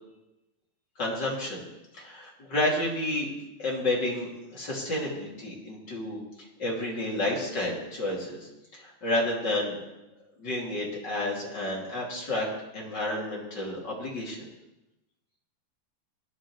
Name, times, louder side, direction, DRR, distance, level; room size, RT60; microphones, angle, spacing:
voice 1, 1.0-1.6 1.9-3.3 3.6-6.2 6.6-9.8 10.4-12.5 12.7-14.5, left 1 dB, 30° left, -4 dB, 2.8 m, -30 dB
17.5 x 11.0 x 3.2 m, 0.96 s
omnidirectional pair, 4.2 m